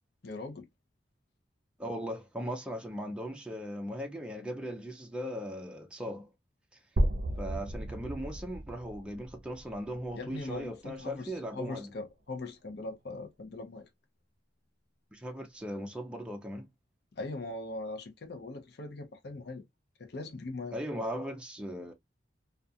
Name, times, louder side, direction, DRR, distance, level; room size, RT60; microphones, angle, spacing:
voice 1, 0.2-0.6 10.1-13.9 17.2-19.6 20.0-20.8, left 2 dB, 60° left, 0.6 m, -40 dB
voice 2, 1.8-6.3 6.7-6.8 7.4-11.9 15.1-16.7 20.7-21.9, equal, 5° right, 0.4 m, -38 dB
sound 1, 7.0-10.9, right 1 dB, 45° right, 0.6 m, -34 dB
2.4 x 2.3 x 2.6 m
head